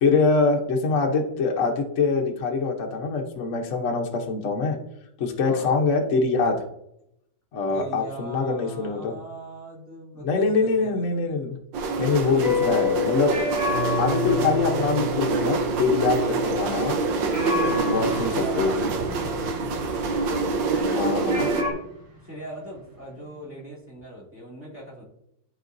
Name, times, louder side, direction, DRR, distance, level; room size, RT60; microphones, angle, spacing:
voice 1, 0.0-4.8 5.2-6.6 7.5-9.1 10.2-11.6 12.0-13.4 14.0-17.0 17.9-18.7 20.9-21.5, left 4 dB, 50° left, 2 dB, 1.0 m, -24 dB
voice 2, 5.4-5.8 7.7-10.9 12.4-12.5 16.2-16.3 17.5-20.1 20.6-21.8 22.2-25.0, right 1 dB, 5° right, -6 dB, 2.1 m, -40 dB
sound 1, 11.7-21.6, right 3 dB, 85° right, 1.6 m, -26 dB
sound 2, 12.4-17.0 17.3-20.9 21.3-21.7, left 2 dB, 45° right, 2.0 m, -29 dB
sound 3, 18.8-24.0, equal, 65° right, 2.4 m, -43 dB
11.0 x 4.5 x 2.6 m, 0.78 s
omnidirectional pair, 2.0 m